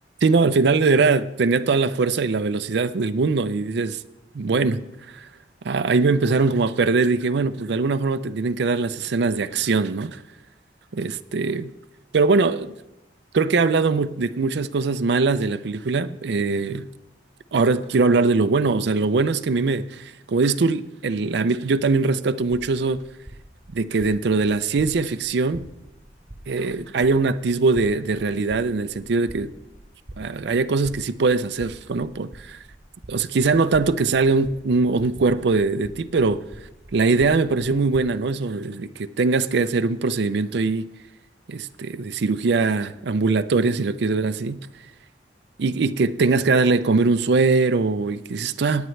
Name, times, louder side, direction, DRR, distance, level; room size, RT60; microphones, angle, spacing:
voice 1, 0.2-4.0 4.3-4.8 5.1-5.2 5.6-10.2 10.9-11.7 12.1-12.7 13.3-16.9 17.5-23.0 23.7-25.7 26.5-29.5 30.2-32.6 33.1-36.4 36.9-40.9 41.5-44.7 45.6-48.9, right 4 dB, 70° right, 0.5 m, -21 dB
sound 1, 22.6-38.2, right 1 dB, 25° right, 0.8 m, -45 dB
17.0 x 9.1 x 3.2 m
head